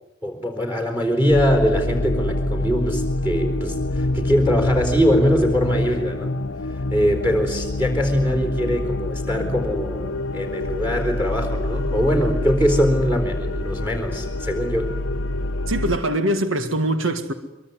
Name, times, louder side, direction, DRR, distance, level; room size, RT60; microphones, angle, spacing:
voice 1, 0.2-6.4 6.7-14.9, equal, 10° right, 4.2 m, -22 dB
sound 1, 1.3-16.0, left 2 dB, 80° left, 0.9 m, -26 dB
voice 2, 15.7-17.3, right 1 dB, 85° right, 1.8 m, -22 dB
24.0 x 23.0 x 9.6 m
head